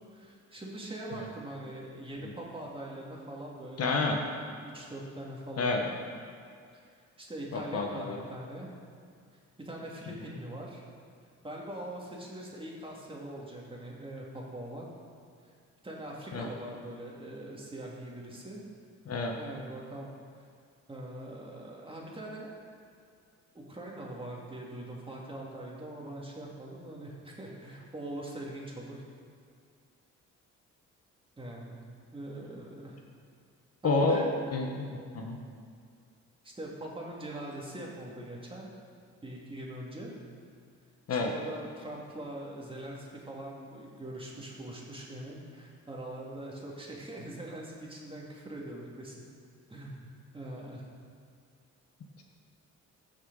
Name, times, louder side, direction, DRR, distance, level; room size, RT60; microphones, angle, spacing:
voice 1, 0.1-5.9 6.7-6.8 7.2-8.7 9.6-10.8 11.4-14.9 15.8-18.6 19.4-20.1 20.9-22.5 23.5-28.9 31.4-31.8 32.1-32.9 33.8-34.3 36.4-38.7 39.2-40.1 41.1-49.2 49.7-50.1 50.3-50.9, right 1 dB, 20° right, -3 dB, 2.3 m, -42 dB
voice 2, 3.8-4.2 5.6-5.8 7.5-8.2 16.3-16.5 19.1-19.3 33.8-34.2 34.5-35.4 41.1-41.3, left 3 dB, 55° left, 1 dB, 1.3 m, -29 dB
15.0 x 6.5 x 4.0 m, 2.2 s
cardioid pair, 90°, 30 cm